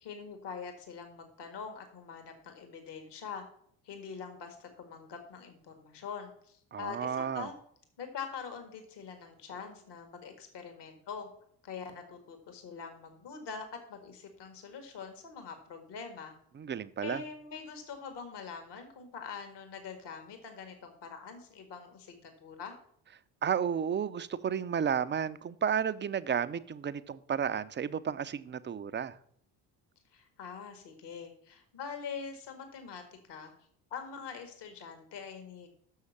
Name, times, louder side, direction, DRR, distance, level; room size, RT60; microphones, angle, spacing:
voice 1, 0.0-3.5 3.8-7.5 8.0-11.3 11.6-16.4 17.0-22.8 30.1-33.0 33.3-33.5 33.9-35.7, left 6 dB, 55° left, 1.8 m, -44 dB
voice 2, 6.7-7.5 16.5-17.2 23.4-29.2, right 7 dB, 25° right, 0.5 m, -32 dB
6.4 x 6.4 x 7.0 m
hypercardioid pair, 55°, 49 cm